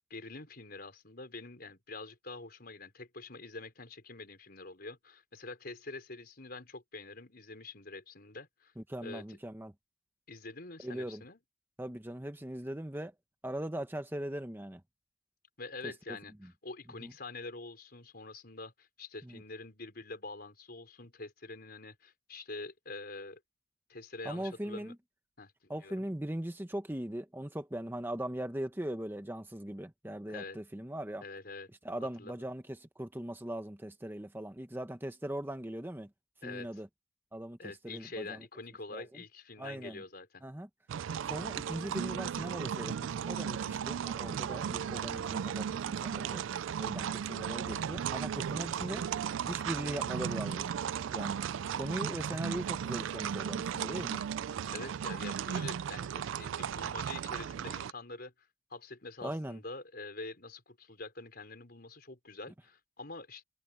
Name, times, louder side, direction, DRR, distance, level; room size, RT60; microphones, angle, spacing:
voice 1, 0.1-8.7 9.0-9.4 10.3-11.4 15.6-23.4 23.9-24.9 25.4-26.1 30.3-30.6 31.2-31.7 32.0-32.4 36.4-36.8 37.6-40.4 54.7-63.4, left 3 dB, 50° left, 4.8 m, -46 dB
voice 2, 8.8-9.7 10.8-11.2 11.8-13.1 13.4-14.8 17.0-17.1 19.2-19.4 24.2-24.9 25.7-31.2 31.8-36.1 36.4-36.9 37.3-37.6 37.8-38.4 38.9-39.1 39.6-40.0 40.4-40.7 41.2-46.4 46.8-49.0 49.5-50.7 51.1-51.4 51.7-54.3 59.2-59.6, right 1 dB, 10° right, 0.9 m, -40 dB
sound 1, 40.9-57.9, right 8 dB, 80° right, 0.3 m, -36 dB
head